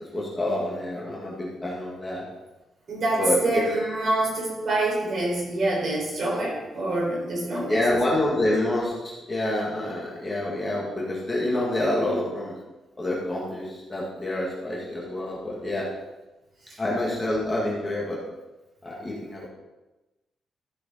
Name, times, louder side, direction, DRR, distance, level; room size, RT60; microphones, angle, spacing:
voice 1, 0.0-2.3 3.2-3.4 7.7-12.6 13.0-15.9 16.8-18.2 18.8-19.5, left 1 dB, 15° left, -5 dB, 2.0 m, -27 dB
voice 2, 2.9-7.8 8.3-8.4 16.6-16.8, right 2 dB, 45° right, -3 dB, 3.8 m, -26 dB
14.0 x 6.5 x 4.3 m, 1.1 s
wide cardioid pair, 170°, 0 cm